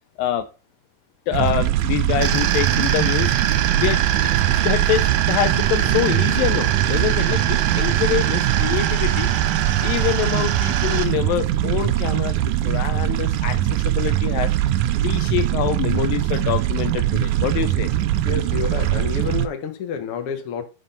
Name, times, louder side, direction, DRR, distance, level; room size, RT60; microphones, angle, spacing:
voice 1, 1.3-3.3 3.7-9.3 9.8-14.5 15.0-17.9, left 12 dB, 80° left, 2.2 m, -25 dB
sound 1, 1.3-19.5, right 13 dB, 90° right, 1.7 m, -22 dB
sound 2, 2.2-11.0, right 11 dB, 70° right, 2.2 m, -24 dB
sound 3, 5.6-10.1, right 6 dB, 35° right, 2.6 m, -39 dB
voice 2, 18.2-20.6, left 7 dB, 55° left, 1.7 m, -29 dB
6.3 x 6.2 x 5.6 m
omnidirectional pair, 4.4 m